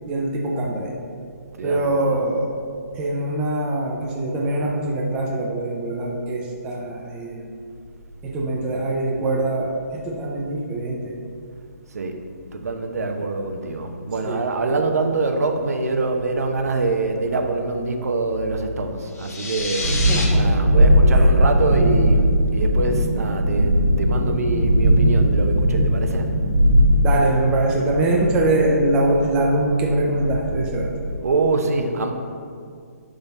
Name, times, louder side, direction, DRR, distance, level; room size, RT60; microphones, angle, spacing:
voice 1, 0.1-0.9 1.6-2.5 3.0-7.6 8.2-11.1 14.2-14.5 19.8-20.5 21.1-21.3 27.0-30.9, right 2 dB, 10° right, -2 dB, 0.4 m, -23 dB
voice 2, 1.6-2.3 11.9-12.2 12.5-19.9 20.3-26.3 31.2-32.1, right 3 dB, 65° right, 5 dB, 0.8 m, -24 dB
sound 1, 19.1-20.2, left 3 dB, 65° left, 1.8 m, -28 dB
Thunderstorm, 19.6-31.1, equal, 40° right, 1.5 m, -19 dB
10.5 x 3.9 x 4.1 m, 2.3 s
hypercardioid pair, 170°, 9 cm